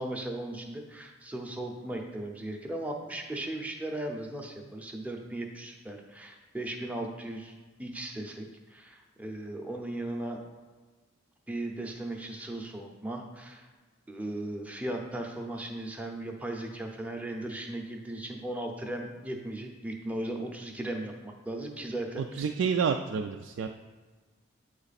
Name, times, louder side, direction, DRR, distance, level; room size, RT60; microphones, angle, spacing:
voice 1, 0.0-10.4 11.5-13.7 14.1-22.4, right 1 dB, 5° right, 1 dB, 0.6 m, -37 dB
voice 2, 22.4-23.7, right 6 dB, 70° right, 4 dB, 0.3 m, -28 dB
8.8 x 3.2 x 4.1 m, 1.4 s
head